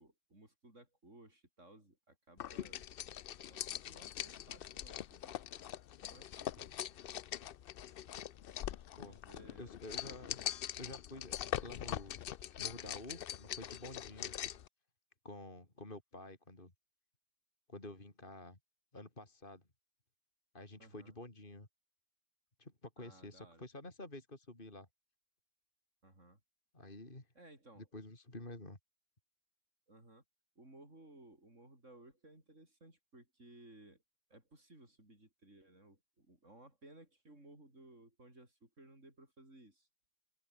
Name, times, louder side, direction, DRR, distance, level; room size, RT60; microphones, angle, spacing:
voice 1, 0.0-2.9 3.4-5.4 6.0-7.0 9.0-9.8 10.4-10.6 11.5-11.7 20.8-21.2 23.0-23.7 26.0-26.4 27.4-27.9 29.9-30.2 30.6-34.0 34.3-39.9, right 1 dB, 55° right, 6.9 m, -60 dB
sound 1, 2.4-14.7, left 11 dB, 65° left, 0.5 m, -43 dB
voice 2, 9.6-10.4 10.8-12.2 12.6-14.5 15.2-16.7 17.7-18.6 18.9-19.6 20.5-21.7 22.6-24.9 26.7-27.3 27.8-28.8, left 2 dB, 35° left, 4.4 m, -50 dB
open air
omnidirectional pair, 1.5 m